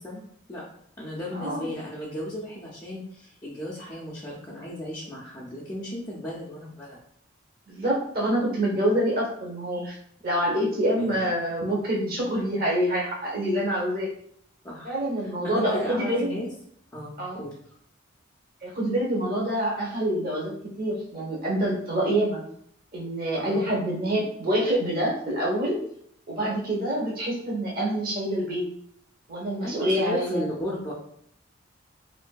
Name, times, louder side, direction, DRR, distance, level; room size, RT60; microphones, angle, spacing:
voice 1, 0.0-0.7 1.0-7.0 11.0-11.3 14.6-15.0 15.2-16.5 16.9-17.6 23.4-23.7 26.4-26.6 29.6-30.9, equal, 20° left, -7 dB, 0.5 m, -35 dB
voice 2, 1.3-1.7 7.7-10.0 10.2-14.1 14.8-16.3 17.2-17.4 18.6-22.4 22.9-25.8 26.3-28.7 29.3-30.4, right 1 dB, 50° right, -3 dB, 0.9 m, -26 dB
3.6 x 2.5 x 2.2 m, 0.67 s
head